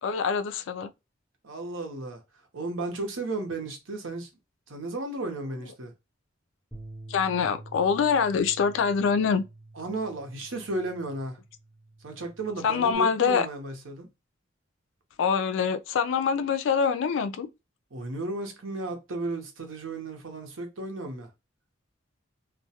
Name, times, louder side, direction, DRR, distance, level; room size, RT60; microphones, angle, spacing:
voice 1, 0.0-0.9 7.1-9.4 12.6-13.5 15.2-17.5, left 6 dB, 65° left, 0.3 m, -25 dB
voice 2, 1.4-2.2 2.5-4.3 4.7-5.9 9.7-11.4 12.0-14.1 17.9-21.3, right 2 dB, 80° right, 0.8 m, -34 dB
Bass guitar, 6.7-13.0, right 2 dB, ahead, 0.6 m, -48 dB
2.2 x 2.1 x 2.7 m
head